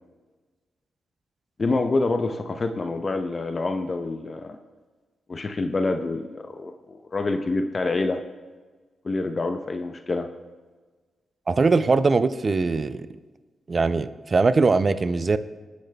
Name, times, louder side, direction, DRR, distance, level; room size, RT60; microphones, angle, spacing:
voice 1, 1.6-4.6 5.3-8.2 9.0-10.3, left 3 dB, 45° left, 6 dB, 0.7 m, -27 dB
voice 2, 11.5-13.1 13.7-15.4, right 4 dB, 45° right, 13 dB, 0.5 m, -21 dB
20.0 x 8.4 x 2.3 m, 1.4 s
supercardioid pair, 45°, 0 cm